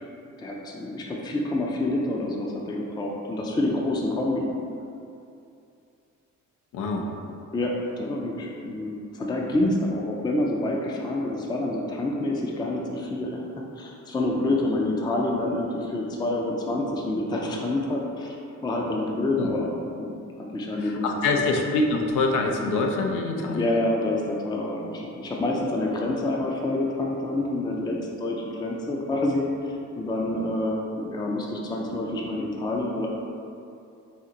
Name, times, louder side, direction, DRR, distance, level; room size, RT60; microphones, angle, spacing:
voice 1, 0.4-4.5 7.5-13.4 13.8-18.4 18.6-19.7 20.0-20.1 20.5-21.1 21.3-21.5 23.5-33.1, left 2 dB, 15° left, -1 dB, 0.4 m, -27 dB
voice 2, 6.7-7.1 19.4-19.5 20.8-23.7, left 3 dB, 85° left, 2 dB, 0.6 m, -25 dB
4.2 x 2.5 x 3.8 m, 2.6 s
cardioid pair, 90°, 30 cm